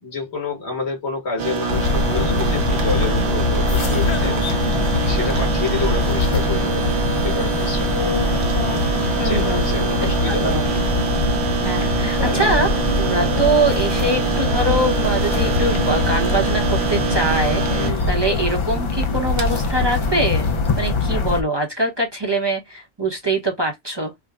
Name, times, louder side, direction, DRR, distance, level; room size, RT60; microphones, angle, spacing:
voice 1, 0.0-7.9 9.2-10.7 11.8-12.5 17.7-18.2, left 4 dB, 80° left, 1.8 m, -29 dB
sound 1, 1.4-21.0, right 6 dB, 85° right, 1.1 m, -25 dB
sound 2, 1.7-21.4, left 3 dB, 40° left, 0.4 m, -22 dB
voice 2, 9.2-10.6 11.6-12.7 13.0-20.5 20.8-24.1, right 2 dB, 25° right, 0.8 m, -23 dB
4.5 x 2.1 x 2.3 m
omnidirectional pair, 1.1 m